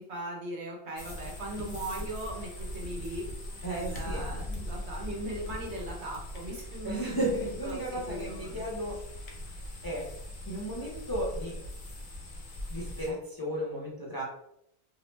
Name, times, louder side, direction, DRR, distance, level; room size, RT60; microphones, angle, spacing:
voice 1, 0.1-3.3 3.6-7.2 7.6-8.6, right 1 dB, 90° right, -1 dB, 1.1 m, -39 dB
sound 1, 1.0-13.1, left 1 dB, 55° left, 0.7 m, -40 dB
voice 2, 3.6-4.2 6.8-9.0 9.8-10.1 10.5-11.6 12.7-14.2, right 1 dB, 35° left, -5 dB, 0.4 m, -34 dB
2.7 x 2.0 x 3.1 m, 0.78 s
omnidirectional pair, 1.1 m